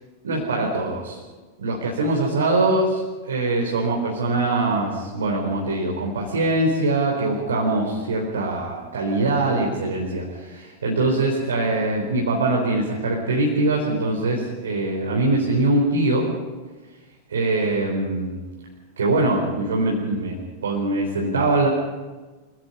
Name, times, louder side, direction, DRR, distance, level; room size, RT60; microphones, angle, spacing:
voice 1, 0.2-1.2 1.6-16.3 17.3-18.4 19.0-21.7, right 2 dB, 65° right, -2 dB, 4.3 m, -23 dB
26.5 x 18.0 x 5.5 m, 1.3 s
figure-of-eight pair, 90°, 0 cm